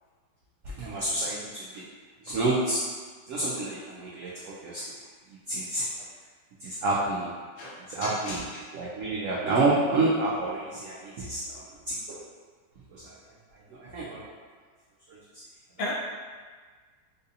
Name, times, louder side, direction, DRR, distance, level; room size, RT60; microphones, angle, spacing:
voice 1, 0.8-1.8 2.2-2.8 3.3-4.8 5.3-5.9 6.6-7.3 7.9-8.4 8.7-12.2 12.9-13.1 13.5-14.2 15.1-15.4, right 2 dB, 85° right, -6 dB, 0.7 m, -29 dB
voice 2, 7.6-8.7 15.8-15.9, left 1 dB, 75° left, -5 dB, 1.3 m, -35 dB
3.9 x 2.6 x 2.5 m, 1.5 s
omnidirectional pair, 1.9 m